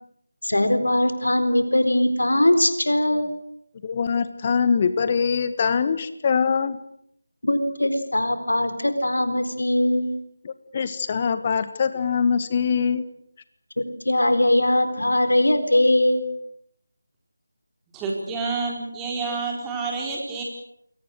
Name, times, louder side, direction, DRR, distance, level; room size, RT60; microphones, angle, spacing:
voice 1, 0.4-3.3 7.4-10.1 13.8-16.3, left 1 dB, 75° left, 10 dB, 4.2 m, -21 dB
voice 2, 3.8-6.8 10.4-13.0, left 6 dB, 30° left, 13 dB, 1.6 m, -23 dB
voice 3, 17.9-20.4, right 4 dB, 10° right, -1 dB, 4.3 m, -28 dB
28.5 x 22.5 x 6.6 m, 0.71 s
figure-of-eight pair, 160°, 0 cm